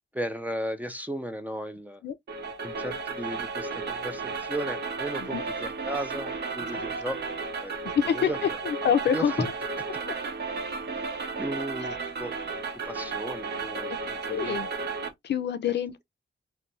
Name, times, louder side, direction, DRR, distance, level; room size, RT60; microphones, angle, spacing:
voice 1, 0.1-2.0 2.6-7.8 8.1-8.6 9.1-9.5 11.4-12.3 12.9-14.8 15.7-15.8, right 1 dB, 10° right, 0.3 m, -35 dB
sound 1, 2.3-15.1, right 4 dB, 60° right, 0.7 m, -33 dB
voice 2, 7.8-9.5 10.1-10.2 14.3-14.7 15.2-16.0, left 8 dB, 60° left, 0.4 m, -26 dB
2.5 x 2.2 x 2.9 m
wide cardioid pair, 150°, 20 cm